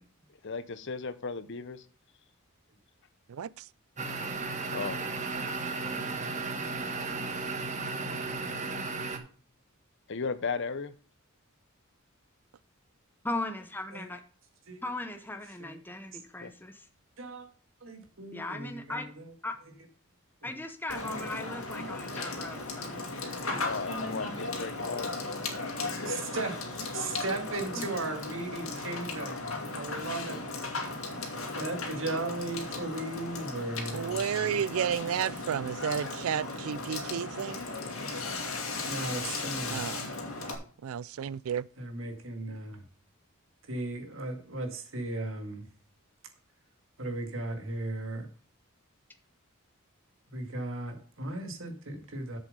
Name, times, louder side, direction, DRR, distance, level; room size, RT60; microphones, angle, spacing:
voice 1, 0.4-1.8 4.7-5.0 10.1-10.9 16.4-16.5 23.6-25.1, left 4 dB, 60° left, 0.8 m, -35 dB
voice 2, 3.3-3.6 33.9-37.6 39.7-40.1 40.8-41.7, right 8 dB, 80° right, 0.4 m, -32 dB
sound 1, 4.0-9.2, right 3 dB, 35° right, 1.4 m, -34 dB
voice 3, 13.2-14.2 14.8-16.9 18.3-19.1 19.4-19.5 20.4-23.0 23.4-24.2 27.4-27.5 27.8-27.9, left 2 dB, 10° left, 0.8 m, -38 dB
voice 4, 17.2-17.5 17.8-19.3 26.0-30.4 31.5-34.5 38.8-39.9 41.8-42.8 43.7-45.7 47.0-48.3 50.3-52.4, right 2 dB, 65° right, 2.1 m, -36 dB
Water / Water tap faucet / Sink (filling or washing), 20.9-40.6, left 3 dB, 75° left, 2.3 m, -36 dB
7.6 x 7.2 x 5.4 m
head